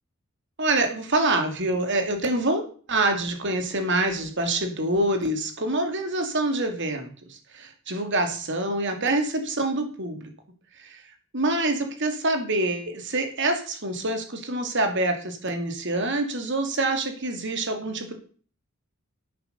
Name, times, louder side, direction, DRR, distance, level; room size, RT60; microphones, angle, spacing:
voice 1, 0.6-2.6 2.9-10.3 10.8-11.0 11.3-18.1, right 2 dB, 60° right, 6 dB, 2.6 m, -26 dB
10.5 x 8.7 x 6.9 m, 0.43 s
head